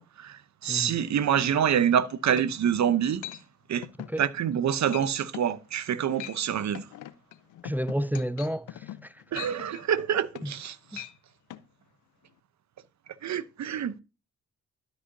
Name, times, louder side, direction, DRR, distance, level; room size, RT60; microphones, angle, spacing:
voice 1, 0.0-3.2 3.7-3.9 4.2-6.8 9.3-11.0 13.2-14.0, right 9 dB, 65° right, 0.7 m, -26 dB
sound 1, 1.9-2.0 2.4-2.8 3.2-3.4 3.8-4.2 4.5-4.7 4.9-5.1 5.3-5.6 6.0-6.4 6.7-10.6 10.9-11.1 11.5-11.6, left 13 dB, 85° left, 0.6 m, -41 dB
voice 2, 7.6-9.2 10.4-10.5 10.9-11.0, equal, 5° right, 0.4 m, -31 dB
12.5 x 5.6 x 2.6 m
supercardioid pair, 50°, 30 cm